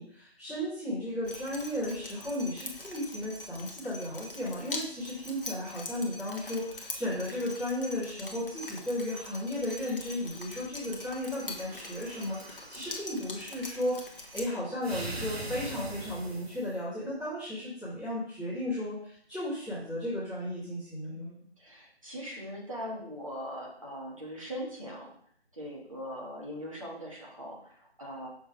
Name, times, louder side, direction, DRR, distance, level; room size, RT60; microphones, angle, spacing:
voice 1, 0.0-21.3, left 1 dB, ahead, -19 dB, 0.7 m, -35 dB
Drip, 1.2-14.4, left 2 dB, 55° left, 1.1 m, -43 dB
sound 1, 11.2-13.0 14.8-16.8, right 1 dB, 65° right, 1.3 m, -41 dB
voice 2, 21.1-25.1 25.5-28.3, equal, 30° right, -3 dB, 1.3 m, -41 dB
6.3 x 3.4 x 4.6 m, 0.64 s
figure-of-eight pair, 170°, 33 cm